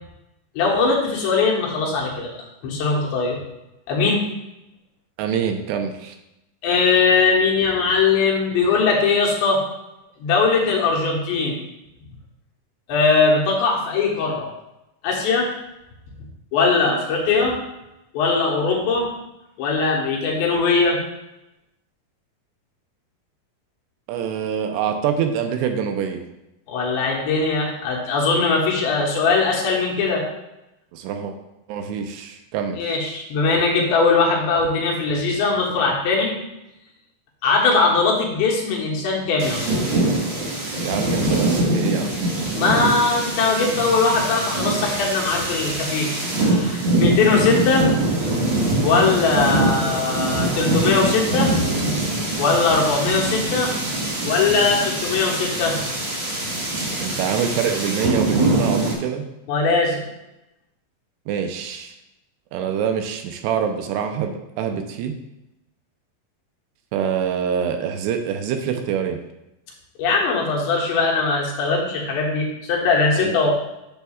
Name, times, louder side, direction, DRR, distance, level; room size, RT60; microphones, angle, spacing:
voice 1, 0.6-2.3 2.6-3.4 3.9-4.3 6.6-9.6 10.2-11.6 12.9-14.5 15.0-15.5 16.5-17.6 18.1-19.1 19.6-21.0 26.7-30.2 32.8-36.4 37.4-39.7 42.5-46.1 46.4-47.9 48.8-51.6 52.4-53.7 54.3-55.8 59.5-60.0 70.0-73.5, left 4 dB, 80° left, -2 dB, 3.5 m, -20 dB
voice 2, 5.2-6.1 24.1-26.2 30.9-31.3 31.7-32.9 40.8-42.2 57.0-59.3 61.3-61.9 62.5-65.2 66.9-69.2 73.2-73.5, right 7 dB, 80° right, 5 dB, 2.7 m, -25 dB
sound 1, 39.4-58.9, right 2 dB, 45° right, 1.6 m, -23 dB
10.5 x 7.2 x 2.4 m, 0.91 s
omnidirectional pair, 5.0 m